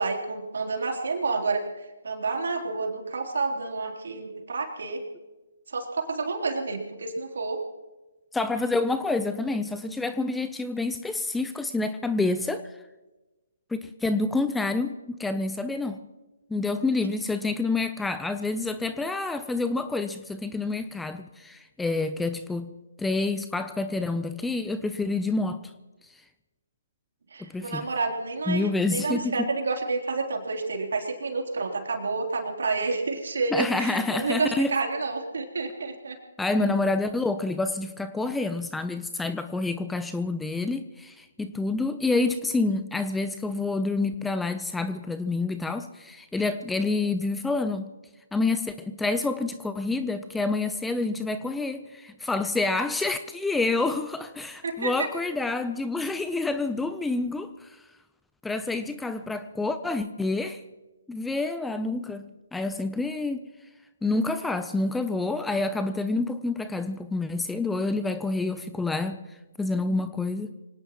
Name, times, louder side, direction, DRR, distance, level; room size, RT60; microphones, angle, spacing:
voice 1, 0.0-1.6 2.0-5.0 5.7-7.6 27.3-36.2 54.6-55.1, right 3 dB, 65° right, 1 dB, 3.4 m, -29 dB
voice 2, 8.3-12.6 13.7-16.0 16.5-22.7 23.0-25.7 27.4-27.9 28.5-29.4 33.5-34.7 36.4-47.9 48.3-57.8 58.4-60.6 61.1-63.5 64.0-69.2 69.6-70.5, left 3 dB, 5° left, 10 dB, 0.6 m, -28 dB
25.5 x 18.0 x 3.0 m, 1.1 s
figure-of-eight pair, 135°, 0 cm